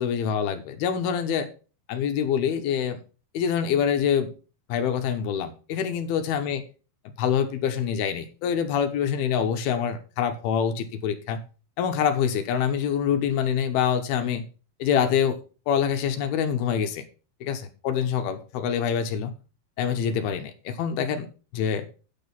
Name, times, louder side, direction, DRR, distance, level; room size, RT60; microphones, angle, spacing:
voice 1, 0.0-1.5 1.9-3.0 3.3-4.3 4.7-6.6 7.1-11.4 11.8-14.4 14.8-15.4 15.7-17.0 17.4-19.3 19.8-21.3 21.5-21.8, left 8 dB, 80° left, 7 dB, 2.8 m, -25 dB
9.6 x 6.1 x 5.5 m, 0.35 s
omnidirectional pair, 4.5 m